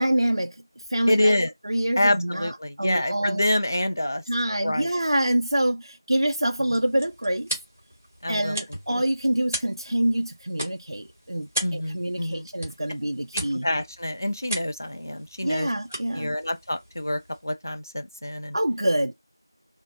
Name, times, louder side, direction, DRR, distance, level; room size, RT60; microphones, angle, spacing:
voice 1, 0.0-1.3 1.6-3.4 4.3-7.5 8.3-13.7 15.4-16.4 18.5-19.1, right 1 dB, 80° right, 0.3 m, -26 dB
voice 2, 1.1-1.5 2.0-4.2 4.6-4.9 8.2-8.6 8.9-9.0 11.6-12.5 13.3-15.7 16.1-18.6, left 1 dB, 45° left, 0.4 m, -26 dB
sound 1, 6.4-17.6, right 1 dB, 20° right, 1.0 m, -38 dB
3.2 x 2.1 x 2.4 m
figure-of-eight pair, 180°, 2 cm